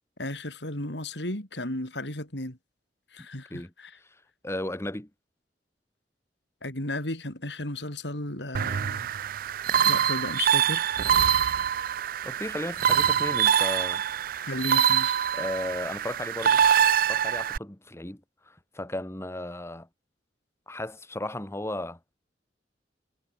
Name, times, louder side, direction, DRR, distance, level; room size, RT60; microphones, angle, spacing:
voice 1, 0.2-2.6 3.1-3.9 6.6-9.1 9.8-10.9 14.4-15.2, left 1 dB, 80° left, 7.2 m, -34 dB
voice 2, 4.0-5.1 12.2-14.0 15.3-16.6 17.1-19.9 20.7-22.2, left 1 dB, 15° left, 1.8 m, -35 dB
sound 1, 8.5-17.6, right 9 dB, 55° right, 0.4 m, -24 dB
head